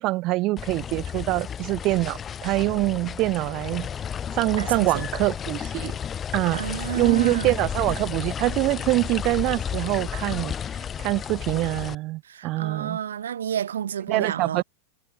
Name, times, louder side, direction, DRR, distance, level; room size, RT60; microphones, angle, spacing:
voice 1, 0.0-3.9 4.3-6.0 6.3-6.7 6.9-10.5 11.0-13.0 14.1-14.6, right 19 dB, 40° right, 1.6 m, -24 dB
sound 1, 0.6-12.0, left 8 dB, 25° left, 3.8 m, -32 dB
voice 2, 4.6-5.1 6.5-7.5 12.2-14.6, right 9 dB, 65° right, 3.1 m, -30 dB
figure-of-eight pair, 90°, 0 cm